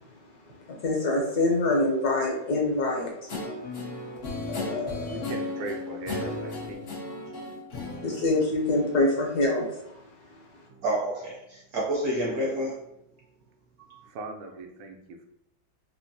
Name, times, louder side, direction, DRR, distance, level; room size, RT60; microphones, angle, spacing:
voice 1, 0.8-3.3 4.5-5.3 8.0-9.8, left 2 dB, 65° left, -1 dB, 1.1 m, -25 dB
Guitar, 3.3-9.1, left 2 dB, 85° left, 0.5 m, -35 dB
voice 2, 5.1-6.9 12.3-12.5 14.1-15.3, right 3 dB, 85° right, 3 dB, 1.4 m, -39 dB
voice 3, 10.7-12.8 13.9-14.1, right 1 dB, 70° right, -4 dB, 0.9 m, -29 dB
3.5 x 2.5 x 2.6 m, 0.81 s
omnidirectional pair, 2.1 m